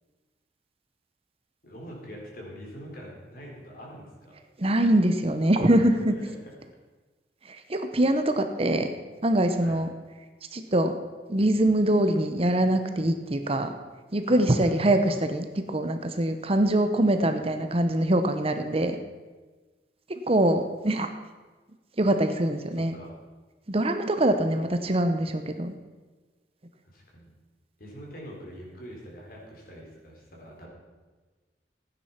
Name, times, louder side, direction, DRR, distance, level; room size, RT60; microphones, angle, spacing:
voice 1, 1.6-4.3 6.1-6.2 9.6-9.8 14.3-15.2 22.7-23.1 26.9-27.3 27.8-30.7, equal, 55° left, -2 dB, 4.2 m, -43 dB
voice 2, 4.6-6.1 7.7-8.9 9.2-9.9 10.5-10.9 11.3-13.7 14.1-18.9 20.3-21.1 22.0-22.9 23.7-25.7, right 1 dB, 35° right, 7 dB, 0.9 m, -23 dB
15.0 x 9.7 x 5.8 m, 1.3 s
head